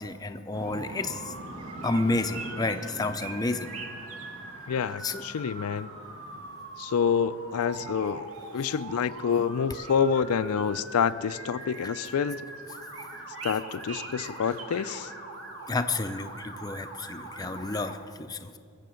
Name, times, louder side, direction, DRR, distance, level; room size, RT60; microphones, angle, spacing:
voice 1, 0.0-1.3 1.8-3.7 5.0-5.2 15.7-18.5, left 2 dB, 15° left, 8 dB, 0.5 m, -30 dB
sound 1, 0.5-17.9, right 3 dB, 70° right, 1.3 m, -45 dB
Motor vehicle (road) / Siren, 0.6-17.9, right 2 dB, 50° right, 1.5 m, -43 dB
voice 2, 4.7-5.9 6.8-12.5 13.4-15.1, left 7 dB, 80° left, 13 dB, 0.4 m, -27 dB
20.5 x 7.7 x 6.4 m, 2.3 s
head